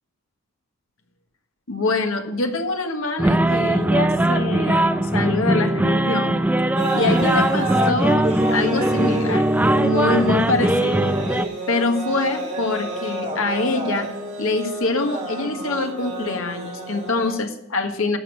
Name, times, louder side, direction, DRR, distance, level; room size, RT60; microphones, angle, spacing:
voice 1, 1.7-6.4 6.9-9.5 9.8-11.2 11.7-14.1 14.4-18.2, left 3 dB, 70° left, 6 dB, 1.5 m, -24 dB
sound 1, 3.2-11.4, right 1 dB, 5° right, 0.4 m, -20 dB
sound 2, 6.7-17.3, right 1 dB, 30° right, 3.0 m, -30 dB
11.5 x 6.7 x 7.5 m, 0.88 s
head